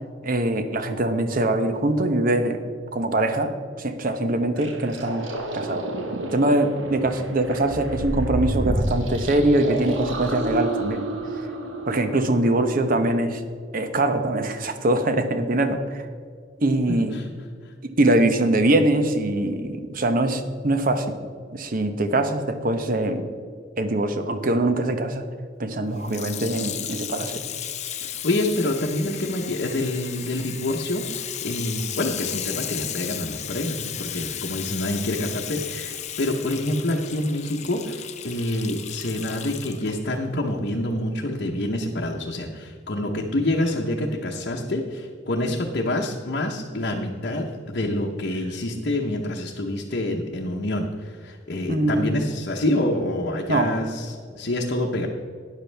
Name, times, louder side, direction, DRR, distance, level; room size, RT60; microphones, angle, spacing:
voice 1, 0.2-2.6 2.9-5.3 5.5-5.9 6.3-11.1 11.9-13.4 13.7-16.1 16.6-17.2 18.0-21.2 21.5-23.2 23.8-25.3 25.6-27.4 51.7-52.1 53.5-53.8, right 1 dB, 45° right, 8 dB, 0.9 m, -23 dB
sound 1, 4.6-13.1, right 1 dB, 75° right, 1.4 m, -30 dB
voice 2, 16.9-17.3 17.6-17.7 28.0-55.1, left 1 dB, 55° left, -2 dB, 0.9 m, -27 dB
Water tap faucet / Sink (filling or washing), 26.0-40.0 40.7-40.8, left 10 dB, 35° left, 0.6 m, -34 dB
12.5 x 10.0 x 3.4 m, 2.2 s
head